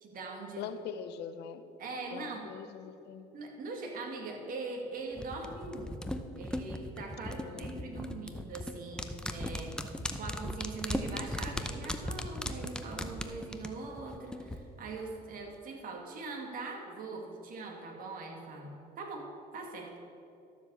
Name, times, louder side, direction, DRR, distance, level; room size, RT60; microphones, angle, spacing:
voice 1, 0.0-0.7 1.8-2.5 3.3-6.0 6.4-9.7 10.2-19.3 19.5-19.9, right 3 dB, 55° right, 1 dB, 2.2 m, -42 dB
voice 2, 0.6-1.6 2.1-3.2 7.2-8.5, left 8 dB, 80° left, 11 dB, 0.8 m, -43 dB
sound 1, 5.2-14.6 14.9-15.0, left 1 dB, 5° left, 0.7 m, -37 dB
12.5 x 7.4 x 7.0 m, 2.9 s
cardioid pair, 110°, 17 cm